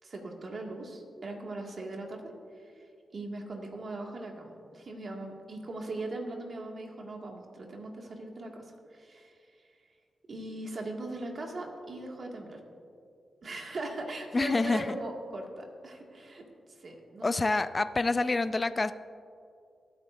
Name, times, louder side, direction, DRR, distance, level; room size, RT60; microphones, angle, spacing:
voice 1, 0.0-2.3 2.5-2.9 3.1-9.4 10.3-12.6 13.4-17.5, right 2 dB, 60° right, 0 dB, 2.0 m, -40 dB
voice 2, 14.3-15.0 17.2-18.9, left 3 dB, 35° left, 12 dB, 0.5 m, -27 dB
23.0 x 8.7 x 2.6 m, 2.4 s
cardioid pair, 65°, 0 cm